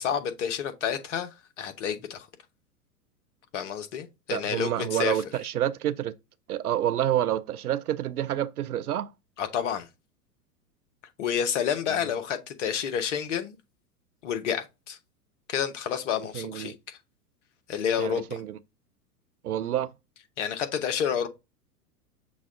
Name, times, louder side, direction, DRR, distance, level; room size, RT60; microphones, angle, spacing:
voice 1, 0.0-2.3 3.5-5.2 9.4-9.9 11.2-13.6 14.2-15.0 15.5-17.0 17.7-18.4 20.4-21.3, left 8 dB, 50° left, 1.0 m, -29 dB
voice 2, 4.3-6.1 6.5-9.1 16.3-16.7 18.0-18.6 19.4-19.9, right 11 dB, 70° right, 0.5 m, -28 dB
6.1 x 2.3 x 3.7 m
figure-of-eight pair, 95°, 47 cm